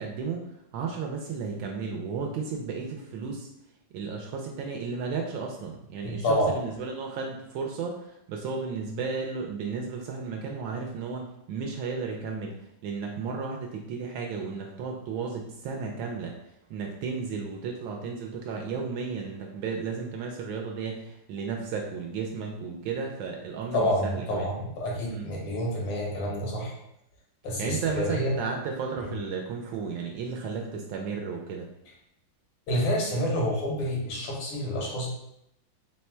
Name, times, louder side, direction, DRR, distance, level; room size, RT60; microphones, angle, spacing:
voice 1, 0.0-3.5 3.9-12.5 12.8-16.3 16.7-24.5 25.1-25.3 27.6-31.7, right 5 dB, 75° right, 1 dB, 1.2 m, -34 dB
voice 2, 6.0-6.6 23.7-26.8 27.4-28.4 29.0-29.1 32.7-35.1, equal, 90° left, -2 dB, 2.0 m, -28 dB
4.1 x 2.2 x 4.3 m, 0.79 s
omnidirectional pair, 2.3 m